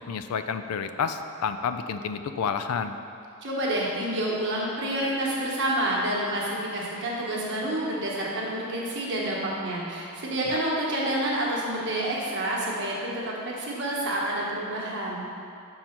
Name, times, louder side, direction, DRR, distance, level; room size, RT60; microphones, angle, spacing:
voice 1, 0.0-3.0 10.5-10.6, left 6 dB, 85° left, 9 dB, 0.4 m, -30 dB
voice 2, 3.4-15.2, right 1 dB, 55° right, -4 dB, 1.2 m, -28 dB
6.0 x 3.9 x 5.8 m, 2.5 s
head